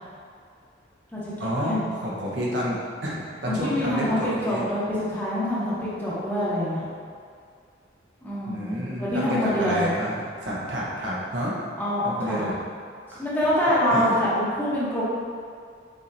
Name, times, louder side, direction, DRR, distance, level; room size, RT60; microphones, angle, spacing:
voice 1, 1.4-4.6 8.5-11.5 12.0-12.6 13.1-13.2 13.9-14.1, equal, 80° right, -6 dB, 1.1 m, -29 dB
voice 2, 3.5-6.8 8.2-10.0 11.8-12.4 13.2-15.0, left 1 dB, 10° left, -10 dB, 1.0 m, -25 dB
6.3 x 2.9 x 2.6 m, 2.2 s
head